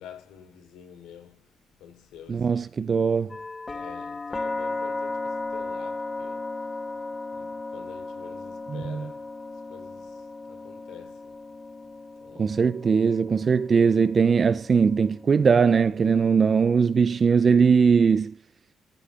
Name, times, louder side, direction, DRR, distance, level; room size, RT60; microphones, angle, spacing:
voice 1, 0.0-1.5 1.8-3.0 3.7-6.5 7.3-9.3 9.7-11.4 12.2-12.6, left 9 dB, 90° left, 4.9 m, -48 dB
voice 2, 2.3-3.3 8.7-9.0 12.4-18.3, right 6 dB, 40° right, 0.6 m, -20 dB
sound 1, 3.3-17.2, left 3 dB, 25° left, 1.5 m, -36 dB
15.0 x 6.5 x 5.6 m
cardioid pair, 90°, 0 cm